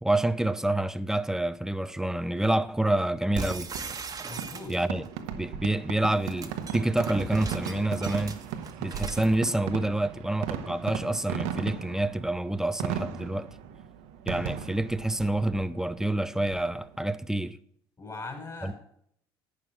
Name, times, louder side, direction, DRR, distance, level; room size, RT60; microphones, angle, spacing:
voice 1, 0.0-3.7 4.7-5.0 5.4-8.4 8.8-13.5 14.3-17.6 18.6-18.7, right 1 dB, 5° right, 0.6 m, -27 dB
sound 1, 3.3-5.1 6.0-9.3, right 4 dB, 25° right, 1.4 m, -38 dB
Fireworks, 3.4-17.0, right 8 dB, 65° right, 1.1 m, -37 dB
voice 2, 4.3-4.8 18.0-18.8, left 3 dB, 25° left, 5.5 m, -40 dB
11.0 x 9.3 x 4.8 m
hypercardioid pair, 65°, 13 cm